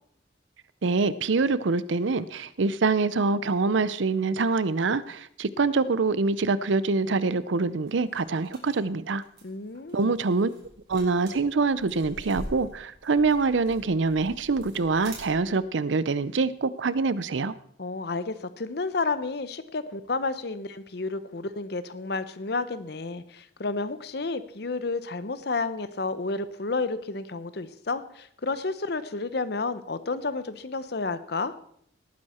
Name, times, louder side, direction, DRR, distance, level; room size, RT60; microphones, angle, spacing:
voice 1, 0.8-9.2 9.9-10.5 10.9-17.5, right 4 dB, 85° right, 17 dB, 0.6 m, -25 dB
sound 1, 7.9-15.6, right 1 dB, 65° right, 4.2 m, -45 dB
voice 2, 9.4-10.1 17.8-31.5, left 3 dB, 60° left, 13 dB, 0.8 m, -31 dB
18.0 x 9.5 x 4.3 m, 0.66 s
head